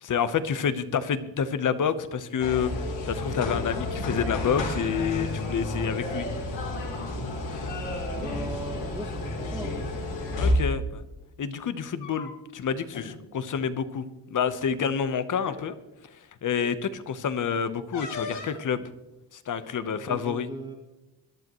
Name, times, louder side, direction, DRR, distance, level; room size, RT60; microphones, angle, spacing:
voice 1, 0.0-6.3 10.4-11.0 11.4-15.7 16.4-18.8 19.3-20.5, left 7 dB, 45° left, 12 dB, 1.1 m, -28 dB
sound 1, 2.4-10.5, left 2 dB, 90° left, 3.7 m, -31 dB
voice 2, 8.2-9.8 19.6-20.7, right 2 dB, 10° right, -2 dB, 2.1 m, -39 dB
sound 2, 10.3-10.5 11.7-12.6 12.9-13.1 13.5-13.7 14.7-14.8 15.4-15.6 17.9-18.7, left 4 dB, 70° left, 3.4 m, -39 dB
21.5 x 11.5 x 3.1 m, 0.97 s
cardioid pair, 105°, 43 cm